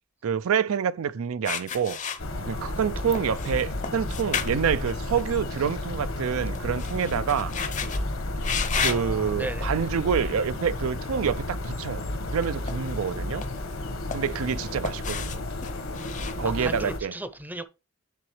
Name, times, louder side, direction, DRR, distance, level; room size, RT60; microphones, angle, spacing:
voice 1, 0.2-2.0 2.5-7.5 8.8-12.0 12.3-13.4 14.1-15.4 16.4-17.1, right 7 dB, 75° right, 0.4 m, -27 dB
sound 1, 1.4-2.8 3.1-5.7 6.0-8.0 8.4-9.1 9.8-10.0 12.3-13.1 13.4-14.5 14.8-17.0, left 7 dB, 35° left, 0.7 m, -33 dB
sound 2, 2.2-17.0, left 1 dB, 70° left, 1.2 m, -32 dB
voice 2, 8.7-9.7 16.4-17.6, right 1 dB, 10° right, 0.6 m, -36 dB
9.2 x 4.0 x 3.1 m
head